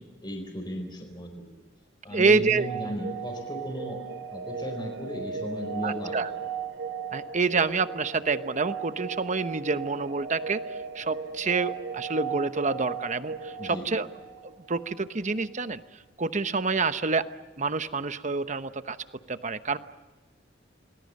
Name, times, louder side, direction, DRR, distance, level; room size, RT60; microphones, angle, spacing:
voice 1, 0.2-1.5 2.0-4.0 4.3-6.2 13.6-13.9, equal, 25° left, 2 dB, 4.4 m, -35 dB
voice 2, 2.1-2.7 5.8-6.3 7.1-14.1 14.4-15.8 16.2-17.3 17.6-19.0 19.3-19.8, right 4 dB, 40° right, 11 dB, 1.0 m, -27 dB
sound 1, 2.2-14.9, right 6 dB, 90° right, 3.4 m, -37 dB
28.5 x 20.0 x 7.7 m, 1.2 s
head